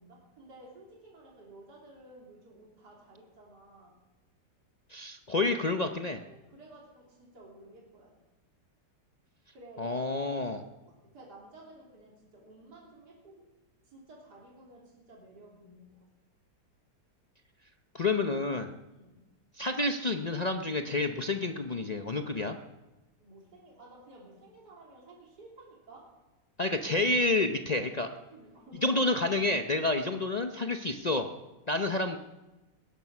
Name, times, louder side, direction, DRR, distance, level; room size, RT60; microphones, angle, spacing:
voice 1, 0.0-3.9 6.3-8.1 9.5-10.4 10.8-13.4 13.8-16.1 18.9-19.2 23.2-26.1 27.3-29.0 30.7-30.8, right 2 dB, 70° right, -3 dB, 3.8 m, -53 dB
voice 2, 4.9-6.2 9.8-10.6 17.9-18.7 19.6-22.6 26.6-28.1 28.8-31.3 31.7-32.2, left 2 dB, 60° left, 6 dB, 0.4 m, -29 dB
19.5 x 11.0 x 5.9 m, 1.1 s
omnidirectional pair, 1.8 m